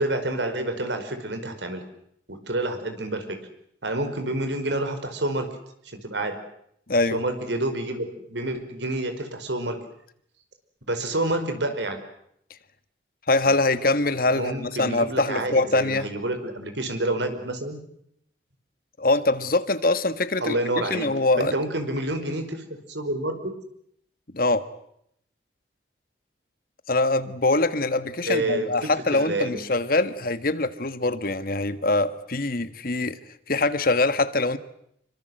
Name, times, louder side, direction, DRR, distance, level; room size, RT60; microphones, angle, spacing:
voice 1, 0.0-1.8 2.3-3.4 3.8-5.5 5.8-6.4 7.1-9.8 10.9-12.0 14.3-17.8 20.4-21.1 21.4-23.6 28.2-29.6, right 1 dB, 85° right, 8 dB, 5.1 m, -28 dB
voice 2, 6.9-7.2 13.3-16.1 19.0-20.6 20.9-21.5 24.3-24.7 26.9-33.2 33.5-34.6, left 2 dB, 55° left, 12 dB, 1.6 m, -23 dB
27.0 x 24.5 x 7.9 m, 0.72 s
head